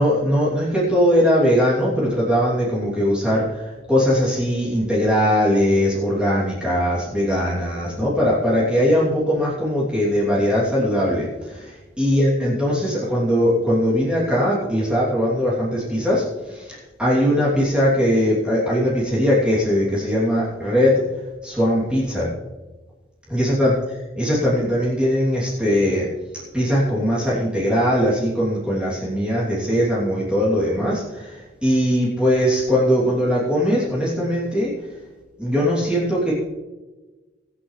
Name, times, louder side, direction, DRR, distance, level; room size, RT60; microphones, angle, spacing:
voice 1, 0.0-21.0 21.4-22.3 23.3-23.7 24.2-26.1 26.5-34.7 35.4-36.3, equal, 5° right, -8 dB, 3.0 m, -20 dB
23.0 x 8.4 x 3.3 m, 1.2 s
head